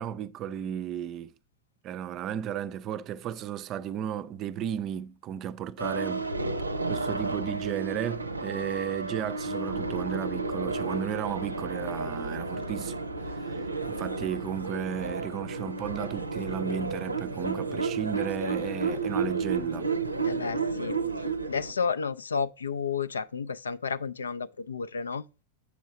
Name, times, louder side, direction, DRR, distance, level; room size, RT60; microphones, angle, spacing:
voice 1, 0.0-1.3 1.8-6.3 6.9-12.9 13.3-13.6 13.9-19.9, right 9 dB, 35° right, 0.5 m, -34 dB
sound 1, 5.8-21.7, right 3 dB, 80° right, 0.6 m, -32 dB
voice 2, 20.2-21.0 21.5-25.2, left 5 dB, 70° left, 0.4 m, -31 dB
8.4 x 6.3 x 4.0 m
figure-of-eight pair, 90°, 0 cm